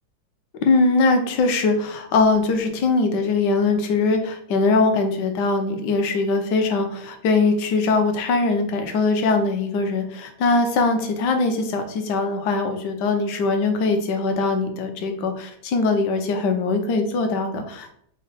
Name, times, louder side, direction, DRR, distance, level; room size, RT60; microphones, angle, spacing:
voice 1, 0.6-18.0, left 3 dB, 70° left, 6 dB, 1.2 m, -21 dB
4.0 x 2.2 x 4.1 m, 0.67 s
omnidirectional pair, 2.2 m